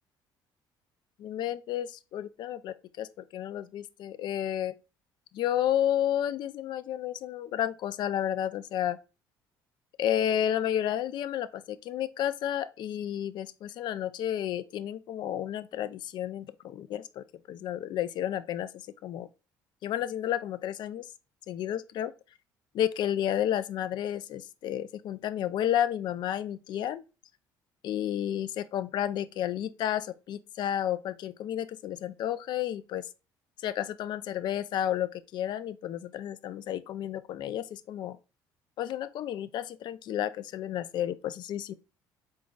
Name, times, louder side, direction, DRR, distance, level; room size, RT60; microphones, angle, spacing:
voice 1, 1.2-4.7 5.3-9.0 10.0-18.7 19.0-19.3 19.8-21.1 21.5-22.1 22.7-27.0 27.8-33.1 33.6-38.2 38.8-41.7, left 11 dB, 60° left, 0.4 m, -31 dB
3.9 x 3.7 x 2.3 m
cardioid pair, 90°, 8 cm